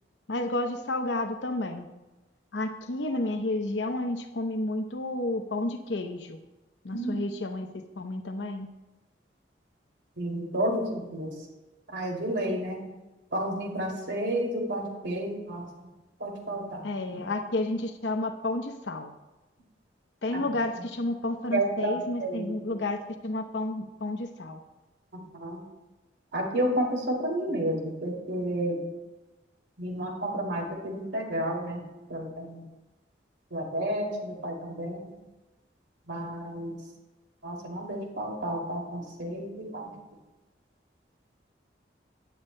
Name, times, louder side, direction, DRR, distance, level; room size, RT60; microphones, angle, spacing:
voice 1, 0.3-1.9 2.5-6.4 6.8-7.7 8.0-8.7 16.8-19.1 20.2-24.6, left 2 dB, 85° left, 5 dB, 0.8 m, -31 dB
voice 2, 10.2-11.3 11.9-12.8 13.3-15.6 16.2-17.2 20.3-20.4 21.5-22.5 25.1-25.6 26.3-28.8 29.8-31.8 32.1-32.6 33.5-35.1 36.1-36.8 37.4-39.9, right 1 dB, 80° right, 0 dB, 2.6 m, -31 dB
16.0 x 10.0 x 2.2 m, 1.1 s
head